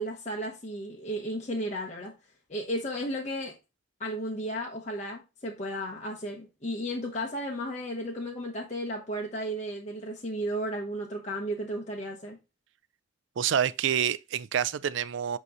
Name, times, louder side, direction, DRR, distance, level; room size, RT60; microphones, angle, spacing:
voice 1, 0.0-2.1 2.5-3.5 4.0-12.4, equal, 35° left, 1.0 m, -34 dB
voice 2, 13.4-15.4, right 9 dB, 65° right, 0.4 m, -27 dB
8.2 x 3.1 x 3.9 m
head